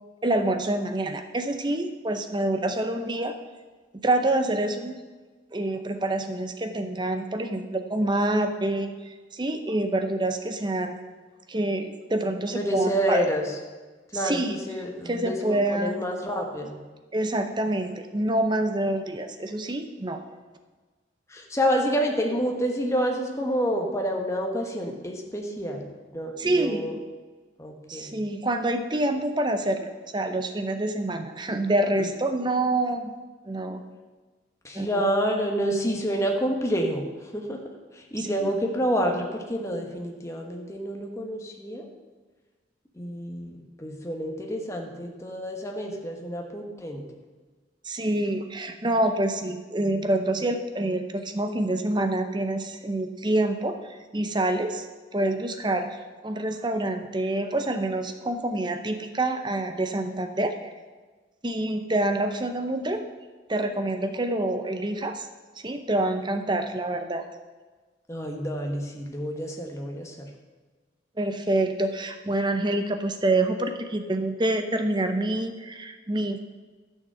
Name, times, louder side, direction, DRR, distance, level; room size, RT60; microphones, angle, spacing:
voice 1, 0.2-3.3 4.0-5.0 5.5-11.0 11.5-13.2 14.1-14.6 15.0-16.1 17.1-20.2 26.4-27.0 27.9-33.1 33.5-33.8 34.7-35.0 38.2-38.5 47.8-54.9 55.1-55.9 56.2-60.7 61.4-63.0 63.5-65.3 65.6-67.2 71.2-76.5, right 1 dB, 25° right, 7 dB, 0.6 m, -27 dB
voice 2, 12.5-13.6 14.1-16.8 21.3-26.9 27.6-28.2 32.0-32.1 34.6-37.6 37.9-41.9 42.9-43.5 43.8-47.0 68.1-70.3, equal, 15° left, 1 dB, 1.2 m, -28 dB
11.5 x 6.5 x 6.8 m, 1.4 s
head